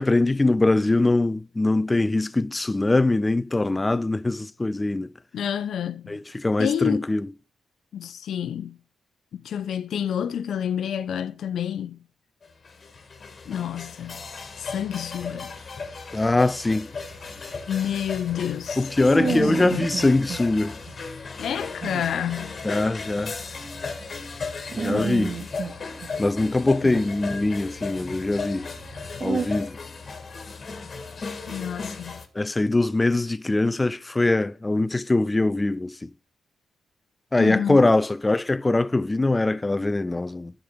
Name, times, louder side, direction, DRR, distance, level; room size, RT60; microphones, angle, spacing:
voice 1, 0.0-5.1 6.1-7.2 16.1-16.9 18.8-20.8 22.6-23.3 24.7-25.4 26.2-28.7 29.2-29.8 32.4-35.9 37.3-40.5, left 2 dB, 15° left, 0.4 m, -22 dB
voice 2, 5.3-6.2 6.6-7.1 7.9-8.8 9.3-12.0 13.5-14.2 14.6-15.5 17.7-18.9 19.2-19.9 21.4-22.6 31.5-32.2 37.4-37.8, left 9 dB, 70° left, 0.6 m, -29 dB
sound 1, 12.4-32.3, left 4 dB, 40° left, 1.7 m, -36 dB
sound 2, 17.1-20.4 20.8-20.9 21.4-21.5 21.7-24.4 24.7-26.5 26.8-29.5, right 5 dB, 50° right, 1.7 m, -32 dB
10.5 x 5.0 x 6.0 m
cardioid pair, 95°, 0 cm